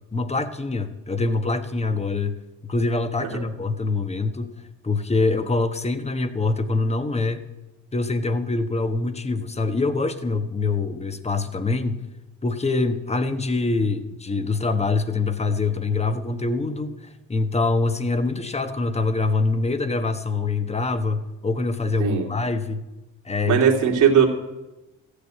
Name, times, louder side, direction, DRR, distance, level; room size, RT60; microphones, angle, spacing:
voice 1, 0.1-2.3 2.6-7.5 7.9-12.0 12.4-16.9 17.3-22.8 23.2-23.6, left 3 dB, 20° left, 10 dB, 1.2 m, -24 dB
voice 2, 23.5-24.3, right 7 dB, 75° right, 0 dB, 2.6 m, -18 dB
14.5 x 6.8 x 9.4 m, 1.0 s
cardioid pair, 90°, 30 cm